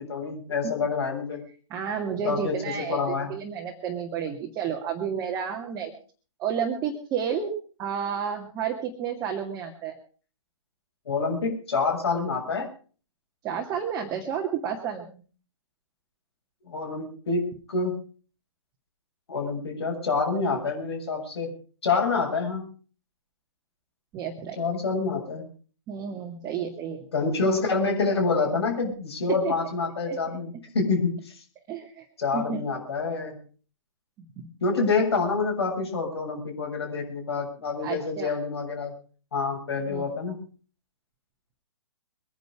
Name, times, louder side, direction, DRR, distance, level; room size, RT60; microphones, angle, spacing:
voice 1, 0.0-1.4 2.2-3.3 11.1-12.7 16.7-17.9 19.3-21.5 21.8-22.6 24.6-25.4 27.1-31.3 32.2-33.4 34.6-38.9 39.3-40.3, left 4 dB, 55° left, 1 dB, 7.3 m, -27 dB
voice 2, 1.7-5.9 6.4-7.5 7.8-10.0 13.4-15.2 24.1-24.7 25.9-27.1 29.3-29.5 30.0-30.2 31.7-32.1 32.3-32.6 37.8-38.4 39.9-40.0, right 7 dB, 20° right, 1 dB, 2.3 m, -31 dB
23.5 x 10.5 x 4.9 m, 0.40 s
figure-of-eight pair, 125°, 16 cm